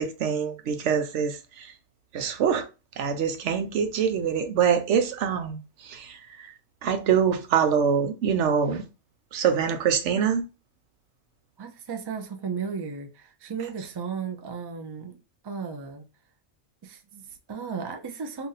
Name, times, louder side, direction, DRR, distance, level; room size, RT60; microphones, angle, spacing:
voice 1, 0.0-1.7 2.1-2.7 3.0-6.5 6.8-8.8 9.3-10.4, right 7 dB, 85° right, 1.0 m, -25 dB
voice 2, 11.6-15.2 15.4-16.0 16.8-18.5, right 6 dB, 35° right, 0.4 m, -35 dB
2.7 x 2.5 x 4.0 m
omnidirectional pair, 1.2 m